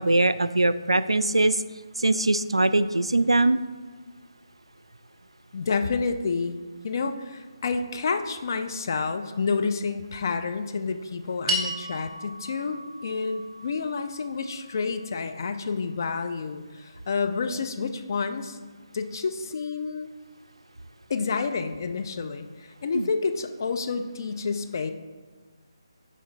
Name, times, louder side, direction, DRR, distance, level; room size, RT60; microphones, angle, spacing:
voice 1, 0.0-1.6 2.0-3.6 22.9-23.1, right 2 dB, 85° right, 13 dB, 0.3 m, -22 dB
voice 2, 5.5-6.6 6.8-18.6 18.9-20.1 21.1-24.9, left 4 dB, 45° left, 7 dB, 0.5 m, -29 dB
sound 1, 11.5-15.9, right 1 dB, 20° right, 1.4 m, -35 dB
7.9 x 5.1 x 3.2 m, 1.4 s
figure-of-eight pair, 150°, 3 cm